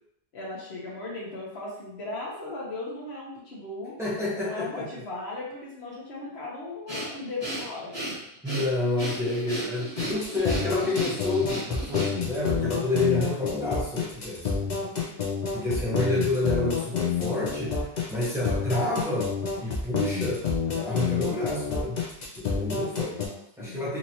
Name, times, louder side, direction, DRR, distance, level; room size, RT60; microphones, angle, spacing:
voice 1, 0.3-3.9 4.4-7.9 15.0-15.4 15.8-16.0 22.7-24.0, left 2 dB, 75° left, -4 dB, 1.2 m, -38 dB
voice 2, 4.0-4.8 8.4-14.5 15.5-17.7 18.1-19.3 19.6-20.4 20.7-22.0 22.3-23.2 23.6-24.0, left 2 dB, 5° right, -7 dB, 0.7 m, -29 dB
Breathing, 6.9-12.4, right 1 dB, 25° left, 1.5 m, -35 dB
sound 1, 10.0-23.3, left 5 dB, 50° left, 0.7 m, -28 dB
2.9 x 2.9 x 2.7 m, 0.76 s
omnidirectional pair, 1.1 m